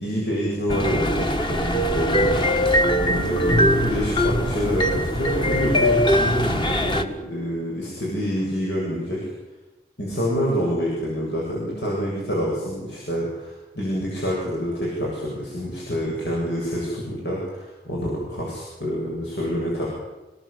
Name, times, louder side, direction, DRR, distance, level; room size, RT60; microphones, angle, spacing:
voice 1, 0.0-2.4 3.0-9.3 10.0-19.9, equal, 80° left, -4 dB, 8.0 m, -27 dB
sound 1, 0.7-7.0, equal, 25° left, 1.7 m, -21 dB
27.0 x 19.0 x 8.6 m, 1.1 s
head